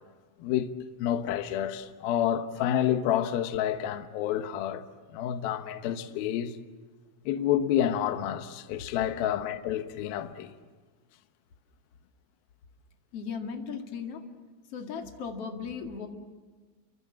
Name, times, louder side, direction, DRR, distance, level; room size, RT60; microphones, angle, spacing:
voice 1, 0.4-0.7 1.0-6.6 7.3-10.5, left 10 dB, 70° left, 2.4 m, -29 dB
voice 2, 13.1-14.2 14.7-16.1, left 6 dB, 45° left, 2.1 m, -36 dB
29.5 x 24.5 x 7.6 m
omnidirectional pair, 5.6 m